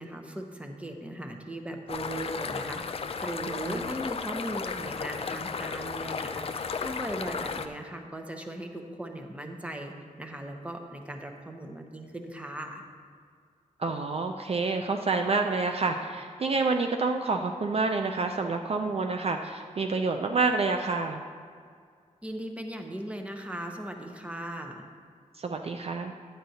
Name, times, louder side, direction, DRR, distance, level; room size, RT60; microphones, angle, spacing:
voice 1, 0.0-12.8 22.2-24.9, right 1 dB, 10° right, 3 dB, 0.7 m, -38 dB
sound 1, 1.9-7.7, left 5 dB, 45° left, 0.4 m, -34 dB
voice 2, 3.5-3.9 13.8-21.2 25.4-26.1, right 4 dB, 50° right, 4 dB, 0.4 m, -28 dB
10.5 x 8.9 x 2.8 m, 2.1 s
wide cardioid pair, 145°, 14 cm